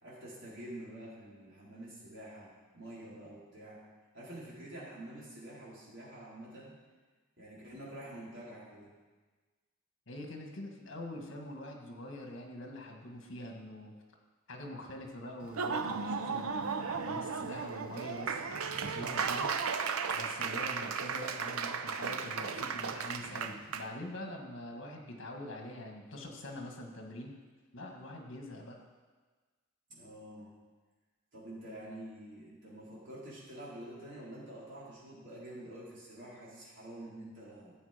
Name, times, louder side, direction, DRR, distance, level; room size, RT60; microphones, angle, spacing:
voice 1, 0.0-2.5 2.7-3.8 4.1-6.7 7.4-8.9 29.9-30.5 31.3-37.7, right 1 dB, 60° right, -7 dB, 4.4 m, -47 dB
voice 2, 10.1-13.9 14.5-19.5 20.1-27.3 27.7-28.8, left 1 dB, 60° left, 2 dB, 1.9 m, -44 dB
Laughter / Applause, 15.4-23.9, right 5 dB, 85° right, 0.7 m, -35 dB
12.5 x 8.4 x 5.2 m, 1.3 s
head